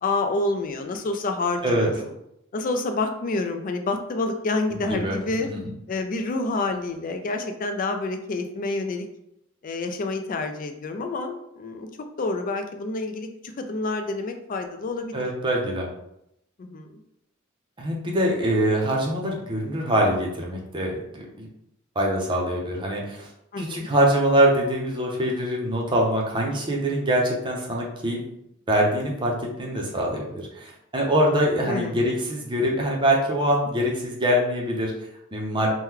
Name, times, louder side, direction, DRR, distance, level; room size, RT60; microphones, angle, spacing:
voice 1, 0.0-2.1 2.5-5.5 5.9-9.1 9.6-11.9 12.2-15.2 16.6-17.0 23.5-23.9 31.7-32.0, left 3 dB, 40° left, 6 dB, 0.4 m, -28 dB
voice 2, 4.7-5.2 15.1-15.9 17.8-21.5 22.0-23.3 23.6-28.2 28.7-34.9 35.3-35.7, right 1 dB, 25° right, -1 dB, 0.6 m, -24 dB
3.0 x 2.2 x 3.6 m, 0.79 s
head